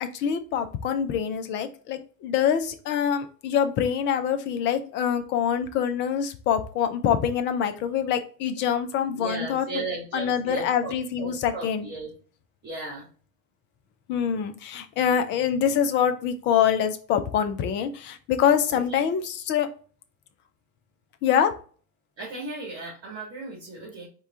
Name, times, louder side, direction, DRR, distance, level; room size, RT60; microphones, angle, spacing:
voice 1, 0.0-9.7 10.1-11.9 14.1-19.7 21.2-21.5, left 8 dB, 25° left, 9 dB, 0.5 m, -25 dB
voice 2, 9.2-12.1 12.6-13.1 18.7-19.0 22.2-24.1, right 3 dB, 30° right, -4 dB, 2.2 m, -35 dB
4.5 x 3.0 x 3.6 m, 0.40 s
hypercardioid pair, 115°, 49 cm